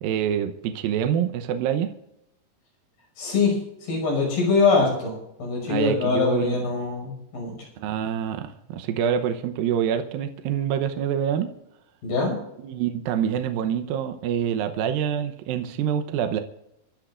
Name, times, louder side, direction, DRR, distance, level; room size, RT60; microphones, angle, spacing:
voice 1, 0.0-1.9 5.7-6.6 7.8-11.5 12.6-16.4, right 9 dB, 80° right, 7 dB, 2.6 m, -26 dB
voice 2, 3.2-5.1 5.4-7.5 12.0-12.3, left 4 dB, 85° left, 0 dB, 7.8 m, -23 dB
27.5 x 13.5 x 2.5 m, 0.83 s
omnidirectional pair, 4.2 m